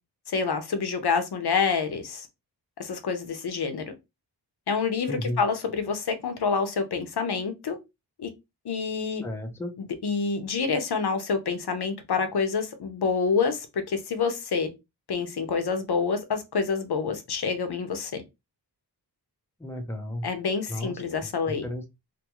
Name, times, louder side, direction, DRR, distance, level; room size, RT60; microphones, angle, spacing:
voice 1, 0.3-2.3 2.8-3.8 4.7-7.8 8.2-8.3 8.6-9.2 9.8-14.7 15.1-18.2 20.2-21.7, left 5 dB, 65° left, 0.7 m, -27 dB
voice 2, 9.2-9.7 19.6-20.3 20.7-20.9 21.6-21.9, left 1 dB, 5° left, 0.5 m, -32 dB
2.5 x 2.3 x 2.9 m
wide cardioid pair, 125°, 42 cm